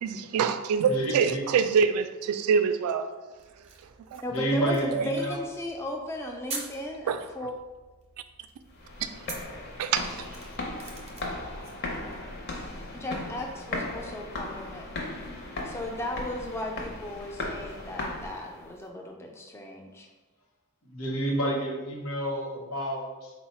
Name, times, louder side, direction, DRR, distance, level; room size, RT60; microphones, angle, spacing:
voice 1, 0.0-3.1 4.1-4.2 4.9-5.1 7.1-7.2 9.8-10.2, right 6 dB, 90° right, 12 dB, 0.3 m, -25 dB
voice 2, 0.8-1.4 4.3-5.4 20.8-23.3, right 1 dB, 75° left, -1 dB, 0.9 m, -29 dB
sound 1, 3.4-12.4, right 3 dB, 30° right, 0.6 m, -46 dB
voice 3, 4.2-7.5 12.9-14.9 15.6-20.1, left 1 dB, 10° left, 1 dB, 0.3 m, -36 dB
sound 2, 8.7-18.7, left 2 dB, 50° left, 0.6 m, -37 dB
3.9 x 2.0 x 4.2 m, 1.2 s
head